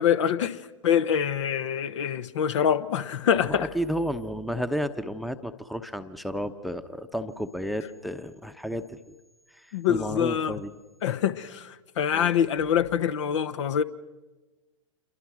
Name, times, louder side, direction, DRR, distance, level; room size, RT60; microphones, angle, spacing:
voice 1, 0.0-3.7 9.7-10.6 11.0-13.8, left 8 dB, 60° left, 1.2 m, -25 dB
voice 2, 3.3-9.1 9.5-10.7 12.1-12.3, equal, ahead, 1.0 m, -32 dB
28.0 x 23.5 x 6.2 m
figure-of-eight pair, 105°, 17 cm